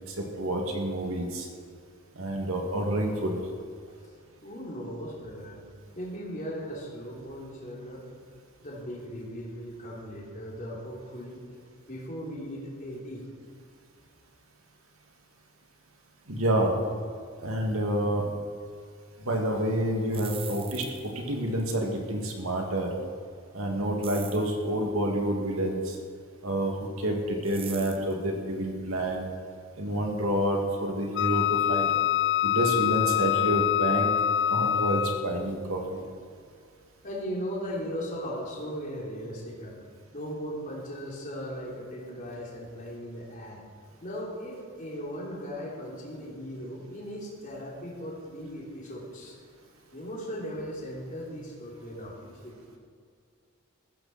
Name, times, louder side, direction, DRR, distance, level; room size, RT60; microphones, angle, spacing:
voice 1, 0.1-1.5 2.2-3.4 16.3-16.7 17.4-18.2 19.2-22.9 23.5-26.0 26.4-26.7 27.0-29.3 29.8-31.9 32.4-34.1 34.5-36.0, right 1 dB, 80° right, 1 dB, 2.5 m, -28 dB
voice 2, 4.4-5.6 6.0-8.1 8.6-11.4 11.9-13.2 37.0-39.7 40.1-43.6 44.0-49.4 49.9-52.6, equal, 40° left, -4 dB, 3.3 m, -38 dB
sound 1, 20.1-21.2 24.0-24.5 27.4-28.1, right 8 dB, 25° right, 1.0 m, -42 dB
Wind instrument woodwind instrument, 31.2-35.4, left 11 dB, 55° left, 0.4 m, -25 dB
15.5 x 14.0 x 4.4 m, 2.2 s
head